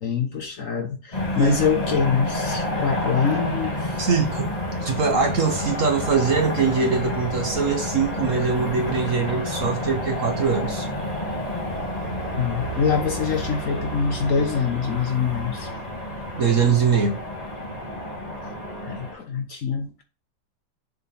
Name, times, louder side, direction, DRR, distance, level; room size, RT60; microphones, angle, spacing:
voice 1, 0.0-4.0 12.3-15.7 18.8-20.0, left 6 dB, 50° left, 1.2 m, -24 dB
sound 1, 1.1-19.1, left 1 dB, 20° left, 1.9 m, -29 dB
voice 2, 4.0-4.5 4.8-10.9 16.4-17.2, right 5 dB, 50° right, 1.2 m, -22 dB
7.0 x 3.8 x 4.2 m
omnidirectional pair, 2.0 m